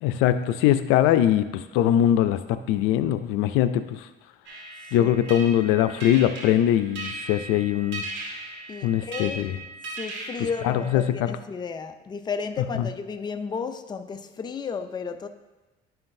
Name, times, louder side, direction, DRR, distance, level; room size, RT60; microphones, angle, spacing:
voice 1, 0.0-4.1 4.9-8.0 8.8-9.6 10.6-11.4 12.7-12.9, left 11 dB, 90° left, 0.4 m, -22 dB
sound 1, 4.5-11.1, right 2 dB, 60° right, 2.2 m, -38 dB
voice 2, 8.7-9.4 10.0-15.3, left 5 dB, 20° left, 0.4 m, -33 dB
10.5 x 5.7 x 2.6 m
cardioid pair, 115°, 21 cm